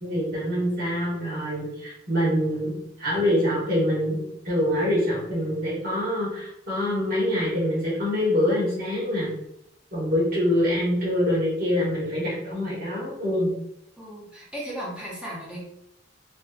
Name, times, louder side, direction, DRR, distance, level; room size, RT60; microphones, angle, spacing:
voice 1, 0.0-9.3 9.9-13.5, left 1 dB, 55° right, -7 dB, 1.4 m, -25 dB
voice 2, 14.0-15.6, right 1 dB, 5° right, -7 dB, 1.0 m, -36 dB
3.1 x 2.8 x 2.4 m, 0.77 s
head